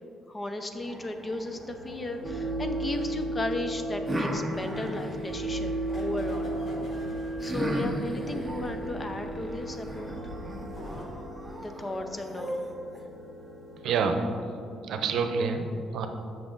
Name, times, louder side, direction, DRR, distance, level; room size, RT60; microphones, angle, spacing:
voice 1, 0.3-6.5 7.4-10.3 11.5-12.6, left 2 dB, 25° left, 6 dB, 0.6 m, -35 dB
sound 1, 0.7-11.1, left 1 dB, 45° left, 1.1 m, -45 dB
sound 2, 0.8-3.0 4.1-6.1 7.4-13.0, equal, 10° right, 0.9 m, -37 dB
sound 3, 1.5-14.1, right 2 dB, 5° left, 1.3 m, -36 dB
voice 2, 13.8-14.2 14.8-16.1, right 5 dB, 70° right, 6 dB, 0.7 m, -27 dB
7.2 x 5.9 x 3.8 m, 2.4 s
cardioid pair, 115°, 0 cm